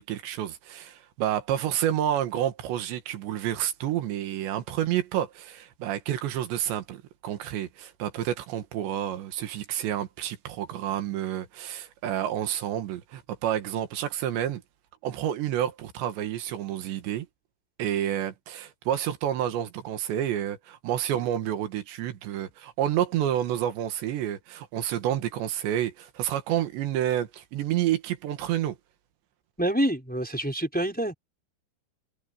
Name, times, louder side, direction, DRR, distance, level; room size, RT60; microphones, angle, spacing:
voice 1, 0.0-14.6 15.0-17.3 17.8-28.8, right 11 dB, 85° right, 3.9 m, -29 dB
voice 2, 29.6-31.1, right 1 dB, ahead, 4.2 m, -26 dB
omnidirectional pair, 4.9 m